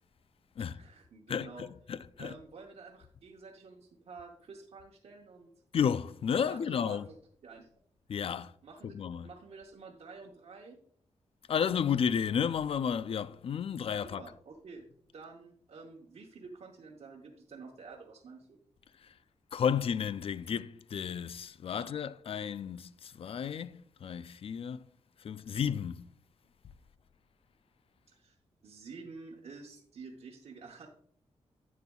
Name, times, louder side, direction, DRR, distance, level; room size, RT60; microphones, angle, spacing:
voice 1, 0.6-1.7 2.2-5.5 6.4-7.2 7.4-7.7 8.6-8.9 9.2-10.8 14.0-14.8 15.1-18.6 21.8-21.9 28.1-28.4 28.6-30.9, right 4 dB, 65° right, 1.0 m, -49 dB
voice 2, 1.3-2.3 5.7-7.1 8.1-8.5 8.8-9.3 11.5-14.2 19.0-19.1 19.5-24.8 25.2-26.1, left 7 dB, 55° left, 0.3 m, -32 dB
10.5 x 8.3 x 2.3 m
wide cardioid pair, 125°, 12 cm